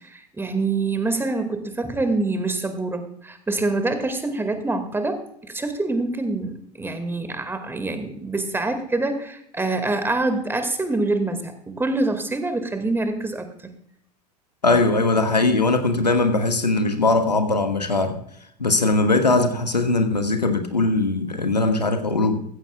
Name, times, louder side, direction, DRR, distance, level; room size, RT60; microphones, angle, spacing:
voice 1, 0.0-13.7, right 2 dB, 10° right, 8 dB, 2.0 m, -25 dB
voice 2, 14.6-18.2 18.6-22.4, left 2 dB, 85° left, 7 dB, 1.3 m, -20 dB
15.5 x 14.5 x 2.3 m, 0.70 s
figure-of-eight pair, 80°, 21 cm